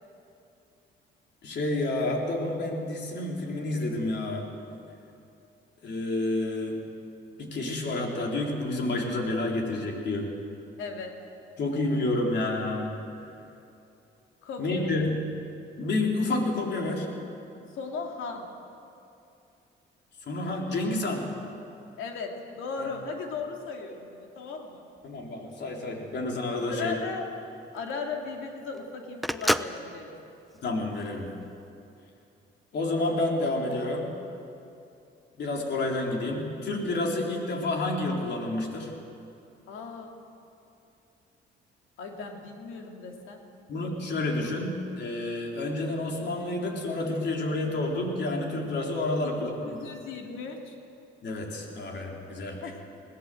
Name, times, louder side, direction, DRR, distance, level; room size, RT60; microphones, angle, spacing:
voice 1, 1.4-4.5 5.8-6.8 7.4-10.3 11.6-12.9 14.6-15.1 15.8-17.1 20.2-21.3 22.8-22.9 25.0-27.0 30.6-31.3 32.7-34.1 35.4-38.9 43.7-49.5 51.2-52.6, left 2 dB, 60° left, 0 dB, 3.8 m, -29 dB
voice 2, 10.8-11.2 14.4-15.0 17.7-18.5 22.0-24.8 26.7-27.3 27.7-30.1 39.7-40.1 42.0-43.4 49.2-50.7 52.6-52.8, left 4 dB, 85° left, 2 dB, 2.7 m, -37 dB
Telephone, 26.3-31.5, equal, ahead, 0.6 m, -32 dB
21.0 x 17.0 x 7.8 m, 2.7 s
cardioid pair, 90°, 20 cm